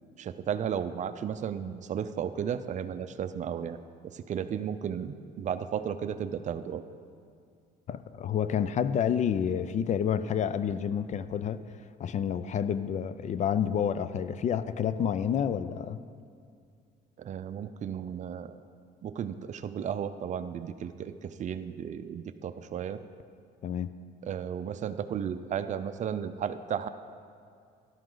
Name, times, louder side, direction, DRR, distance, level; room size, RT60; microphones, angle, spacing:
voice 1, 0.2-3.8 4.0-6.8 17.2-18.6 19.0-23.0 24.2-26.9, right 8 dB, 45° right, 11 dB, 0.5 m, -34 dB
voice 2, 7.9-11.7 12.0-16.0 23.6-24.0, left 8 dB, 45° left, 14 dB, 0.5 m, -29 dB
13.0 x 11.5 x 3.9 m, 2.3 s
cardioid pair, 110°, 17 cm